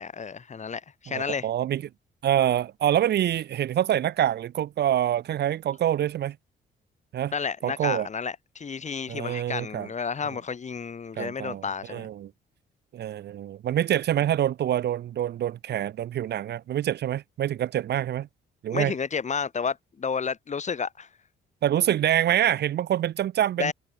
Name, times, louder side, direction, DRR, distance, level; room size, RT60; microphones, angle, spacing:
voice 1, 0.0-1.5 7.3-12.1 18.7-21.1 23.6-23.7, left 6 dB, 35° left, 1.8 m, -31 dB
voice 2, 1.1-1.8 2.2-6.4 7.1-7.3 7.6-8.1 9.1-9.9 10.2-10.4 11.2-12.3 12.9-18.3 18.6-18.9 21.6-23.7, right 11 dB, 55° right, 0.6 m, -26 dB
cardioid pair, 90°, 20 cm